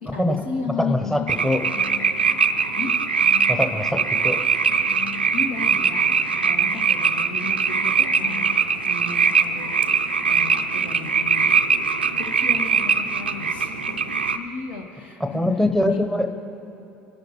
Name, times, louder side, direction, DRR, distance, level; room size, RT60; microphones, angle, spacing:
voice 1, 0.0-1.2 2.8-2.9 5.3-6.0 6.4-9.7 10.2-11.5 12.2-14.0 14.3-15.4 15.8-16.1, left 4 dB, 80° left, 0 dB, 1.9 m, -34 dB
voice 2, 0.8-1.6 3.5-4.4 15.2-16.3, left 1 dB, 5° left, 5 dB, 1.0 m, -23 dB
sound 1, 1.3-14.4, right 5 dB, 85° right, 0.5 m, -21 dB
23.0 x 11.5 x 3.2 m, 2.9 s
figure-of-eight pair, 65°, 5 cm